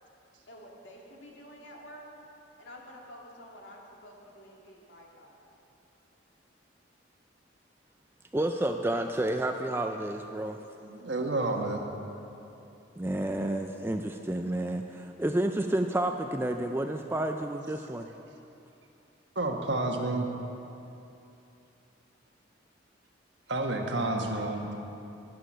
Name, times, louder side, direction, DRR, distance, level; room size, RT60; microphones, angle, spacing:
voice 1, 0.5-2.1 2.6-5.6, equal, 70° left, -2 dB, 2.2 m, -49 dB
voice 2, 8.3-10.6 13.0-18.1, right 1 dB, 10° right, 5 dB, 0.4 m, -30 dB
voice 3, 10.8-11.8 19.3-20.3 23.5-24.7, right 2 dB, 65° right, 2 dB, 1.4 m, -30 dB
11.5 x 11.5 x 6.2 m, 2.7 s
head